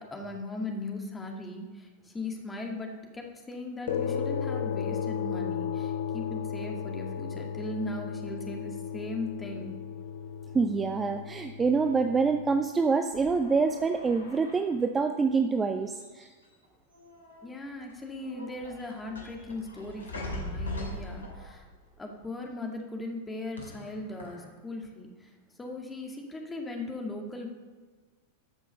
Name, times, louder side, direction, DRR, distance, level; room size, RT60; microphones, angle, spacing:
voice 1, 0.0-9.7 17.4-21.7 22.0-25.3 25.6-27.5, left 2 dB, 15° left, 1 dB, 2.1 m, -38 dB
sound 1, 3.9-12.6, left 7 dB, 55° left, 0.8 m, -34 dB
voice 2, 10.5-16.3, right 4 dB, 15° right, 6 dB, 0.6 m, -26 dB
sound 2, 13.1-14.8 16.0-16.6 16.9-17.5 17.9-21.8 23.6-24.5, left 1 dB, 70° left, 2.4 m, -41 dB
13.0 x 6.1 x 6.6 m, 1.4 s
figure-of-eight pair, 90°, 0 cm